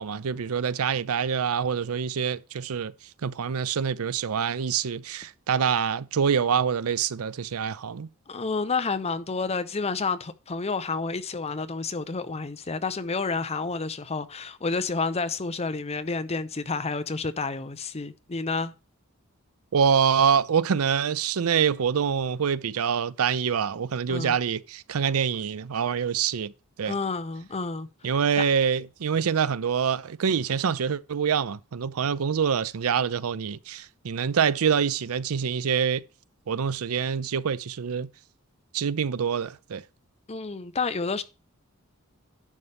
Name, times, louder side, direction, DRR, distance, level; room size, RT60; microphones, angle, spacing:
voice 1, 0.0-2.9 3.2-8.1 19.7-26.5 26.8-26.9 28.0-36.0 36.5-38.1 38.7-39.8, right 7 dB, 85° right, 0.5 m, -25 dB
voice 2, 8.3-18.7 24.1-24.4 26.9-28.4 40.3-41.2, left 4 dB, 30° left, 0.6 m, -30 dB
11.0 x 6.9 x 3.4 m
head